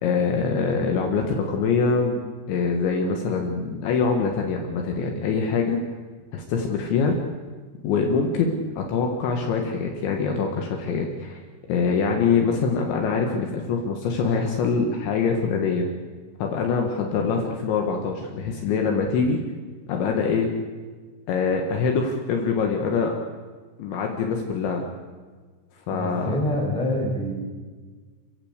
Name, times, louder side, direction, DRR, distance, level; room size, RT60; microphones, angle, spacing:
voice 1, 0.0-2.2 2.5-5.8 6.3-7.2 7.8-11.4 11.7-15.9 16.4-19.4 19.9-20.5 21.3-23.1 23.8-24.8 25.9-26.3, left 5 dB, 70° left, 2 dB, 3.6 m, -24 dB
voice 2, 25.9-27.3, left 1 dB, ahead, -3 dB, 6.1 m, -26 dB
28.0 x 15.5 x 8.1 m, 1.5 s
omnidirectional pair, 5.9 m